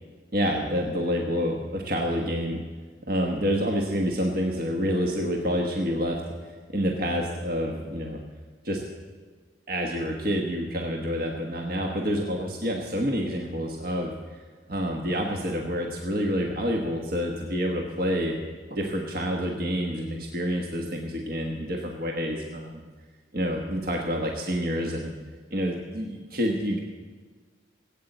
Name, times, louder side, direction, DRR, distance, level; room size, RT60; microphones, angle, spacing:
voice 1, 0.3-2.6 3.1-8.2 8.6-8.8 9.7-14.1 14.7-18.3 18.7-22.8 23.3-25.1 25.5-26.8, equal, 50° right, 0 dB, 1.4 m, -28 dB
17.5 x 8.7 x 7.9 m, 1.5 s
head